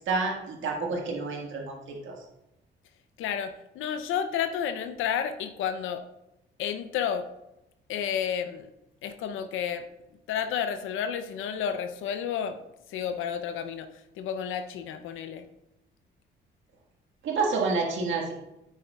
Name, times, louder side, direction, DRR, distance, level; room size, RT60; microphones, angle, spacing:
voice 1, 0.1-2.1 17.2-18.3, right 4 dB, 75° right, 0 dB, 1.7 m, -29 dB
voice 2, 3.2-6.0 6.6-7.3 7.9-8.7 9.0-9.9 10.3-12.6 12.9-15.4, left 8 dB, 85° left, 9 dB, 0.6 m, -31 dB
9.0 x 8.5 x 2.3 m, 0.90 s
cardioid pair, 90°, 20 cm